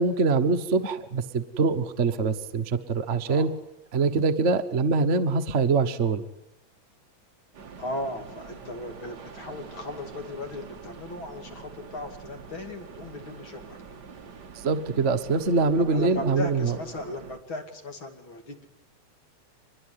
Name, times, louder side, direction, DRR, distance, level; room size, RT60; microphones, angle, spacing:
voice 1, 0.0-3.5 3.9-6.2 14.6-16.8, right 4 dB, 60° right, 7 dB, 0.7 m, -24 dB
sound 1, 7.5-17.4, right 5 dB, 40° right, 1.9 m, -45 dB
voice 2, 7.8-13.8 15.9-18.7, left 2 dB, 45° left, 5 dB, 3.2 m, -37 dB
25.0 x 21.0 x 9.7 m, 0.85 s
omnidirectional pair, 3.3 m